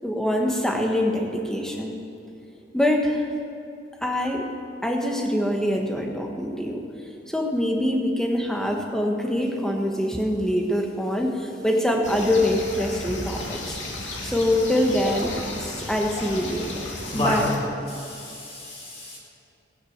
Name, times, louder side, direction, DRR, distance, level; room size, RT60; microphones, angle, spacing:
voice 1, 0.0-2.0 2.7-3.2 4.0-4.4 4.8-6.8 7.3-13.8 14.2-17.5, left 1 dB, 5° left, 1 dB, 1.4 m, -24 dB
sound 1, 12.0-17.6, left 2 dB, 70° left, 2.4 m, -34 dB
voice 2, 17.0-17.4 17.9-19.2, left 1 dB, 30° left, -4 dB, 3.7 m, -30 dB
16.0 x 9.4 x 7.4 m, 2.7 s
head